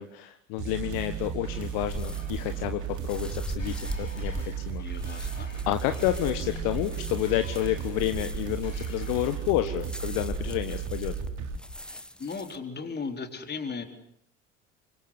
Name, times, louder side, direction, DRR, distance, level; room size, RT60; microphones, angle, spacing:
voice 1, 0.0-4.8 5.7-11.1, left 14 dB, 60° left, 9 dB, 1.6 m, -30 dB
sound 1, 0.6-11.6, right 9 dB, 50° right, 3.1 m, -35 dB
sound 2, 1.1-7.9 8.3-9.7, left 2 dB, 90° left, 7.1 m, -51 dB
sound 3, 1.9-12.6, left 1 dB, ahead, 1.6 m, -40 dB
voice 2, 4.8-5.5 11.8-13.8, left 5 dB, 25° left, 6 dB, 4.2 m, -37 dB
25.5 x 23.0 x 8.1 m, 0.68 s
figure-of-eight pair, 70°, 38 cm